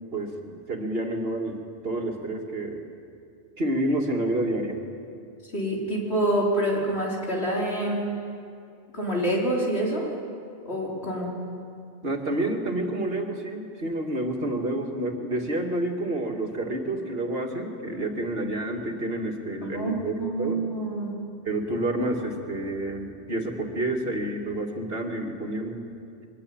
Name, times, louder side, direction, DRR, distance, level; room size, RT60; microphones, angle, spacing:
voice 1, 0.1-2.9 3.6-4.8 12.0-20.6 21.5-25.8, right 1 dB, 65° right, 2 dB, 2.6 m, -29 dB
voice 2, 5.5-8.2 8.9-10.1 10.6-11.3 19.7-21.1, right 1 dB, 70° left, -3 dB, 4.9 m, -27 dB
23.5 x 21.0 x 8.9 m, 2.5 s
omnidirectional pair, 1.1 m